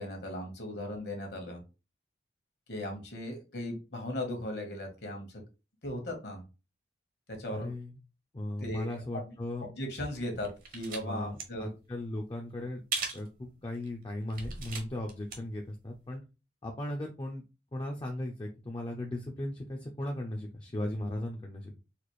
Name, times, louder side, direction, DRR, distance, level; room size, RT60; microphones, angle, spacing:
voice 1, 0.0-1.6 2.7-5.4 5.8-6.4 7.3-7.7 8.6-9.0 9.3-9.4 9.7-11.7, left 1 dB, 65° left, 3 dB, 1.3 m, -37 dB
voice 2, 7.5-8.0 8.3-9.7 11.0-12.8 13.1-16.2 16.6-17.4 17.7-21.7, left 1 dB, 25° left, 1 dB, 0.5 m, -37 dB
sound 1, 10.0-11.0 11.3-11.4 12.9-13.3 13.7-13.9 14.3-15.4 15.7-15.8, right 4 dB, 50° right, 0.8 m, -37 dB
4.1 x 2.4 x 3.1 m, 0.30 s
head